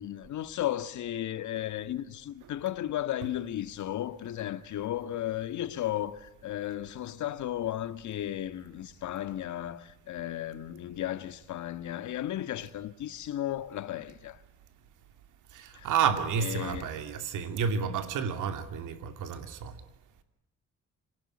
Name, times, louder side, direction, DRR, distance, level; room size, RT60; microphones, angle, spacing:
voice 1, 0.0-14.4 15.7-15.9 16.4-16.9, left 12 dB, 75° left, 1.8 m, -34 dB
voice 2, 15.5-19.8, right 7 dB, 85° right, 2.7 m, -30 dB
27.0 x 18.5 x 10.0 m
cardioid pair, 90°, 30 cm